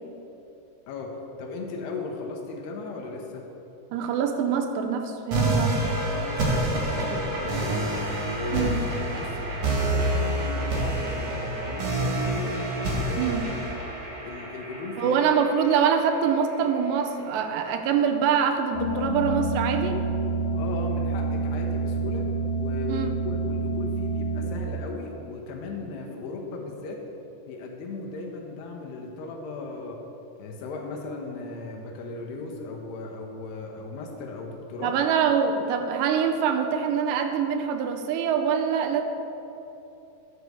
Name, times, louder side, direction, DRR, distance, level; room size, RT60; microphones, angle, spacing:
voice 1, 0.9-3.5 6.1-7.9 8.3-8.8 9.1-12.6 13.0-13.4 14.2-15.2 20.5-22.3 22.6-27.0 27.5-30.0 30.4-34.9, left 3 dB, 80° left, 0 dB, 2.9 m, -36 dB
voice 2, 3.9-5.9 8.5-8.8 13.2-13.4 15.0-20.0 22.9-23.1 34.8-39.0, right 7 dB, 85° right, 6 dB, 2.8 m, -24 dB
sound 1, 5.3-16.3, right 1 dB, 55° right, 2.6 m, -28 dB
sound 2, 18.7-24.5, right 3 dB, 50° left, 3.0 m, -28 dB
11.5 x 4.7 x 6.8 m, 2.9 s
omnidirectional pair, 5.0 m